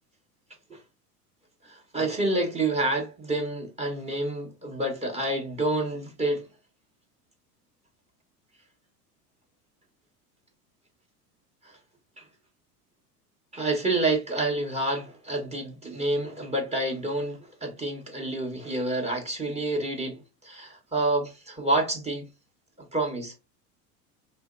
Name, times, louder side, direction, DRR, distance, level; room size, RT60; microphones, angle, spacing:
voice 1, 1.6-6.5 11.6-11.8 12.2-12.3 13.5-22.3 22.8-23.3, right 2 dB, 15° right, 1.0 m, -28 dB
3.0 x 2.7 x 2.4 m
hypercardioid pair, 80°, 48 cm